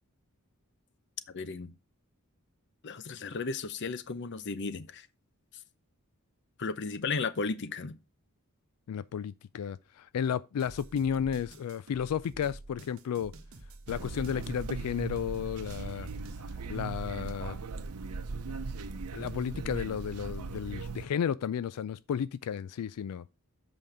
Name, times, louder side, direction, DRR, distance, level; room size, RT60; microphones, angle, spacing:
voice 1, 1.3-1.7 2.8-5.1 6.6-8.0, left 4 dB, 50° left, 0.7 m, -34 dB
voice 2, 8.9-13.3 13.9-16.1 16.7-17.6 19.1-23.3, left 8 dB, 90° left, 0.3 m, -33 dB
sound 1, 10.6-16.4, right 2 dB, 65° right, 1.1 m, -49 dB
sound 2, 13.9-21.1, right 4 dB, 90° right, 0.7 m, -39 dB
7.7 x 5.2 x 4.7 m
head